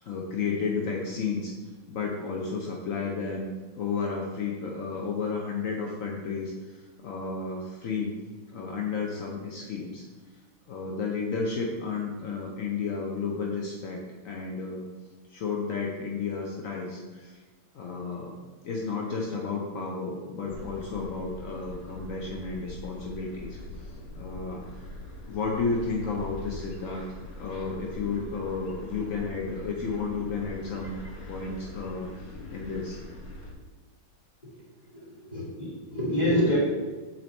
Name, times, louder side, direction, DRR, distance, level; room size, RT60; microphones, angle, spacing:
voice 1, 0.0-1.5 1.9-3.5 3.8-8.1 8.5-10.0 10.7-14.9 15.3-17.4 17.7-18.3 18.6-23.6 24.1-24.6 25.2-27.0 27.4-31.0 31.3-33.0, left 4 dB, 65° left, -1 dB, 0.8 m, -32 dB
sound 1, 20.5-33.5, left 1 dB, 50° left, 1.3 m, -42 dB
voice 2, 34.4-36.6, left 1 dB, 20° left, -6 dB, 1.9 m, -28 dB
7.2 x 4.3 x 4.3 m, 1.3 s
omnidirectional pair, 2.3 m